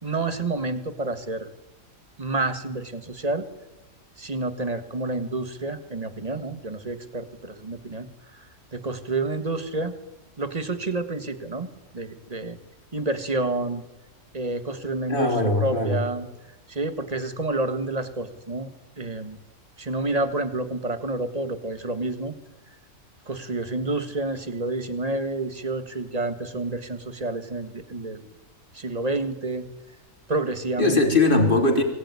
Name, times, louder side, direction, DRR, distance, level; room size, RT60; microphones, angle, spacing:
voice 1, 0.0-1.5 2.2-3.5 4.2-8.1 8.3-8.4 8.7-10.0 10.4-12.6 12.9-13.8 14.3-16.3 16.7-18.7 19.0-19.4 19.8-22.3 23.3-28.2 28.7-29.6 30.3-31.0, right 2 dB, 25° right, 10 dB, 1.7 m, -29 dB
voice 2, 15.1-16.0 30.8-31.8, left 2 dB, 35° left, 3 dB, 3.7 m, -20 dB
24.0 x 17.5 x 9.8 m, 1.1 s
omnidirectional pair, 1.6 m